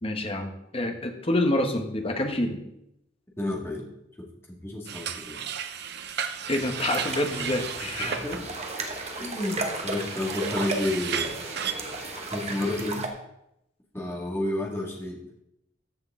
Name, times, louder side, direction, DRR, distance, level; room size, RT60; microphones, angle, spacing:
voice 1, 0.0-2.6 6.5-8.2, left 1 dB, 30° left, 5 dB, 1.1 m, -27 dB
voice 2, 3.4-3.9 4.2-5.4 8.0-8.4 9.1-11.4 12.3-13.1 13.9-15.2, left 1 dB, 15° left, -2 dB, 1.9 m, -31 dB
sound 1, 4.9-11.7, right 8 dB, 60° right, 0.7 m, -34 dB
sound 2, 6.4-12.9, equal, 15° right, 3.7 m, -43 dB
sound 3, 6.8-13.1, right 3 dB, 35° right, 1.1 m, -35 dB
14.0 x 6.3 x 3.7 m, 0.81 s
head